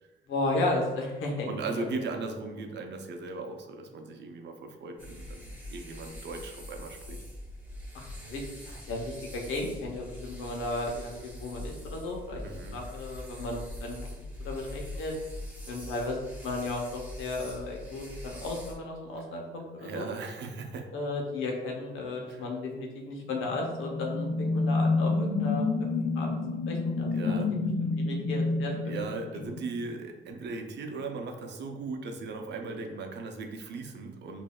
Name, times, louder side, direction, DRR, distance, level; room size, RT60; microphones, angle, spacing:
voice 1, 0.3-1.5 1.7-1.8 7.9-12.4 12.7-15.1 15.7-20.1 20.9-26.4 26.7-27.6 28.0-29.0, left 2 dB, 85° left, 0 dB, 0.8 m, -34 dB
voice 2, 1.5-7.2 12.4-12.8 19.8-20.9 22.3-22.5 27.1-27.5 28.8-34.4, right 3 dB, 60° right, 4 dB, 0.6 m, -38 dB
sound 1, 5.0-18.7, left 1 dB, 10° right, 1.0 m, -43 dB
sound 2, 23.3-29.9, left 3 dB, 50° left, 0.4 m, -29 dB
5.2 x 2.6 x 2.3 m, 1.1 s
cardioid pair, 90°, 20 cm